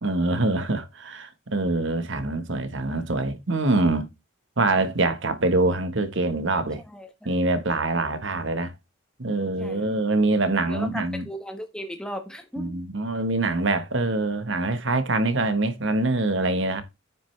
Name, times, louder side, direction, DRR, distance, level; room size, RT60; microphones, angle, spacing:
voice 1, 0.0-4.1 4.6-6.8 7.2-8.7 9.2-11.2 12.6-16.8, right 2 dB, 60° right, 1.2 m, -24 dB
voice 2, 6.5-7.4 9.6-9.9 10.7-12.7, equal, 5° left, 1.2 m, -37 dB
9.2 x 6.2 x 3.2 m
head